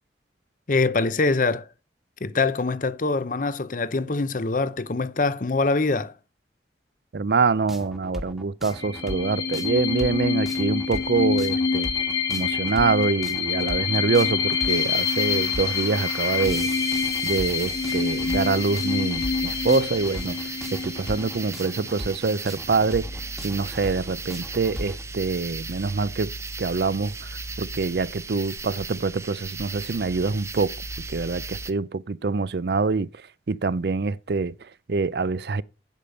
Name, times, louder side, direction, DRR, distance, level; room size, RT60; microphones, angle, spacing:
voice 1, 0.7-1.7 2.2-6.1, left 3 dB, 50° left, 0.7 m, -24 dB
voice 2, 7.1-11.9 12.3-16.7 17.2-20.4 20.7-26.3 26.6-30.7 31.1-35.6, right 4 dB, 65° right, 0.5 m, -25 dB
sound 1, 7.7-25.0, equal, ahead, 1.3 m, -38 dB
sound 2, 8.7-22.1, left 5 dB, 20° left, 1.6 m, -27 dB
sound 3, 14.7-31.7, right 3 dB, 15° right, 0.6 m, -37 dB
8.6 x 8.2 x 5.3 m
head